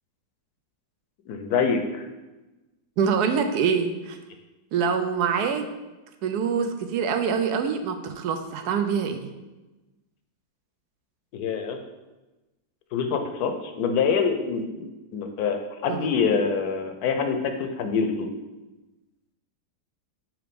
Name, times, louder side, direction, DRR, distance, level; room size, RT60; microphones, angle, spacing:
voice 1, 1.3-2.1 11.3-11.8 12.9-18.3, left 5 dB, 70° left, 6 dB, 1.1 m, -25 dB
voice 2, 3.0-4.2 4.7-5.6 6.2-9.3 15.9-16.1, right 6 dB, 75° right, 7 dB, 1.1 m, -25 dB
5.9 x 3.2 x 5.1 m, 1.1 s
omnidirectional pair, 1.8 m